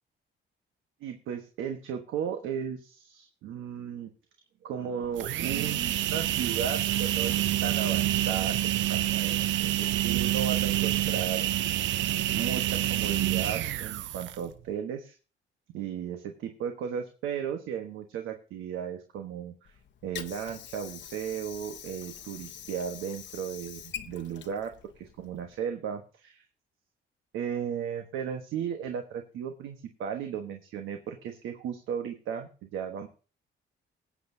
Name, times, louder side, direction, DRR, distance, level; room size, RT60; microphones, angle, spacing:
voice 1, 1.0-4.1 4.6-11.4 12.3-15.1 15.7-26.4 27.3-33.1, right 8 dB, 90° right, 5 dB, 1.2 m, -35 dB
sound 1, 5.0-14.5, right 14 dB, 70° right, 0.5 m, -27 dB
Water / Sink (filling or washing), 19.6-25.7, left 9 dB, 65° left, 0.9 m, -45 dB
19.5 x 8.6 x 2.7 m, 0.34 s
cardioid pair, 90°, 20 cm